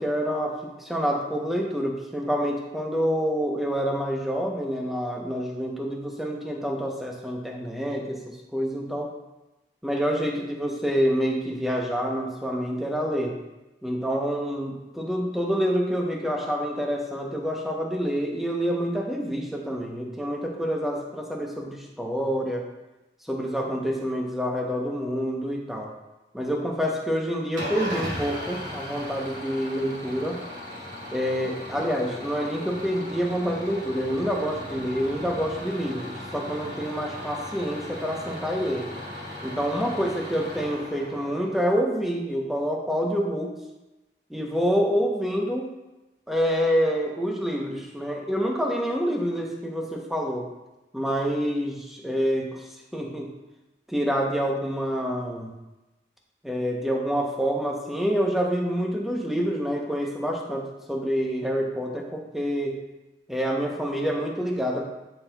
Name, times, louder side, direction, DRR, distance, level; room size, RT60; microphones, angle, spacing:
voice 1, 0.0-9.1 9.8-13.4 13.8-22.6 23.2-25.9 26.3-30.4 31.1-38.9 39.4-43.6 44.3-45.8 46.3-50.5 50.9-53.3 53.9-55.5 56.4-62.8 63.3-64.8, equal, ahead, 0 dB, 0.7 m, -27 dB
Engine starting / Idling, 27.6-41.7, left 1 dB, 45° right, 1.7 m, -37 dB
11.5 x 4.5 x 2.2 m, 1.0 s
head